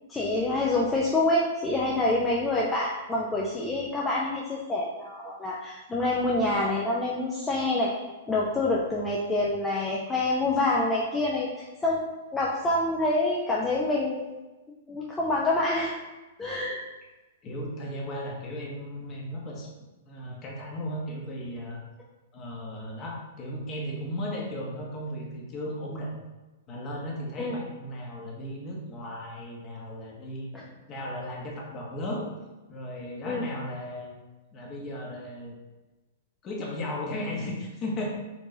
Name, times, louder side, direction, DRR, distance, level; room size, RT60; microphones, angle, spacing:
voice 1, 0.1-11.5 11.8-12.0 12.3-14.3 14.9-15.9 16.4-16.8 27.4-27.6 30.5-30.6 33.2-33.4, left 2 dB, 15° left, -5 dB, 0.6 m, -26 dB
voice 2, 17.4-19.7 20.1-21.8 22.3-26.2 26.7-32.3 32.7-34.1 34.5-35.5 36.4-38.1, left 1 dB, 30° left, -2 dB, 1.1 m, -36 dB
4.4 x 3.0 x 2.7 m, 1.1 s
hypercardioid pair, 120°, 0 cm